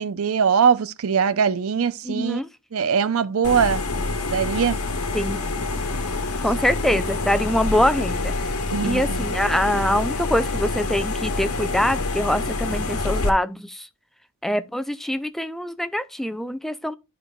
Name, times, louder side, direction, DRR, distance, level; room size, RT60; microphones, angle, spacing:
voice 1, 0.0-2.4 2.7-3.9 4.3-4.8 8.7-9.2, right 6 dB, 70° right, 0.5 m, -21 dB
voice 2, 2.0-2.5 5.1-5.5 6.4-8.6 8.8-13.9 14.4-17.0, equal, ahead, 0.4 m, -24 dB
sound 1, 3.4-13.3, left 3 dB, 85° left, 1.1 m, -26 dB
12.0 x 4.7 x 2.3 m
head